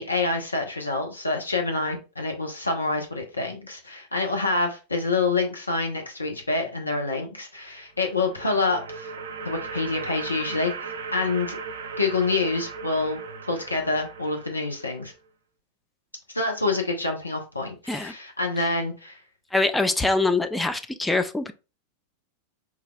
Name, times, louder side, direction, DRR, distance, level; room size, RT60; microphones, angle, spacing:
voice 1, 0.0-9.1 9.4-10.7 11.1-11.6 12.0-13.2 13.5-15.1 16.3-19.2, left 3 dB, 80° left, 2 dB, 0.7 m, -27 dB
sound 1, 7.9-15.1, right 5 dB, 65° right, 0.4 m, -37 dB
voice 2, 19.5-21.5, left 3 dB, 5° left, 8 dB, 0.3 m, -24 dB
4.7 x 2.4 x 2.2 m, 0.31 s
figure-of-eight pair, 90°, 0 cm